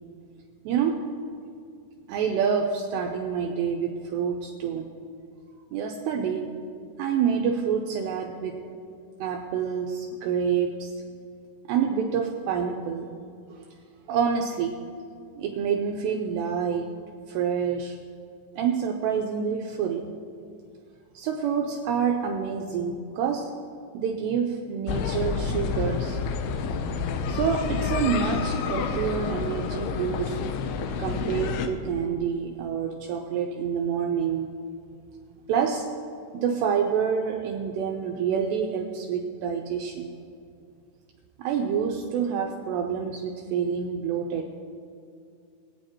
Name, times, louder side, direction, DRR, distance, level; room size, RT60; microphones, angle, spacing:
voice 1, 0.7-1.0 2.1-4.9 5.7-6.5 7.0-8.7 9.2-10.9 11.7-13.1 13.5-13.7 14.1-14.8 15.4-16.9 17.3-18.0 18.6-20.1 21.1-23.5 23.9-26.2 27.3-30.4 31.0-34.5 35.5-35.9 36.3-40.1 41.4-44.5, right 7 dB, 90° right, 2 dB, 2.4 m, -27 dB
sound 1, 24.9-31.7, left 5 dB, 85° left, 3.3 m, -29 dB
22.0 x 9.7 x 3.0 m, 2.4 s
omnidirectional pair, 5.7 m